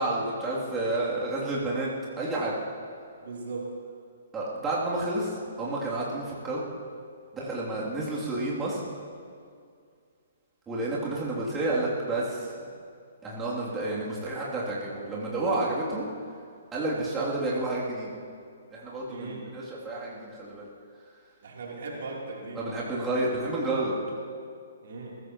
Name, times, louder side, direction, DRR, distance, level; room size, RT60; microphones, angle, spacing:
voice 1, 0.0-1.9 2.2-2.5 4.3-6.6 7.3-8.8 10.7-12.5 13.2-16.1 16.7-18.1 18.7-20.7 22.5-24.0, right 2 dB, 15° right, -7 dB, 2.9 m, -30 dB
voice 2, 3.2-3.8 11.3-11.4 18.8-19.5 21.4-22.6 24.8-25.2, right 3 dB, 55° right, -3 dB, 3.4 m, -38 dB
21.5 x 16.0 x 3.1 m, 2.2 s
figure-of-eight pair, 125°, 0 cm